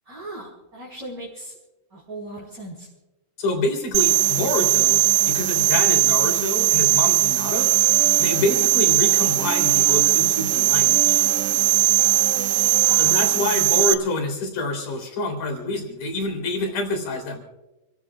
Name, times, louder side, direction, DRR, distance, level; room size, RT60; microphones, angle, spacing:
voice 1, 0.0-1.6 1.9-2.9 12.8-13.6, right 1 dB, 20° right, -6 dB, 4.3 m, -38 dB
voice 2, 3.4-7.7 8.2-11.2 13.0-17.4, left 2 dB, 45° left, 3 dB, 4.7 m, -27 dB
sound 1, 3.9-13.9, right 13 dB, 85° right, 2.2 m, -19 dB
sound 2, 7.6-13.4, right 6 dB, 70° right, 5.7 m, -37 dB
29.5 x 16.5 x 2.4 m, 1.0 s
omnidirectional pair, 5.3 m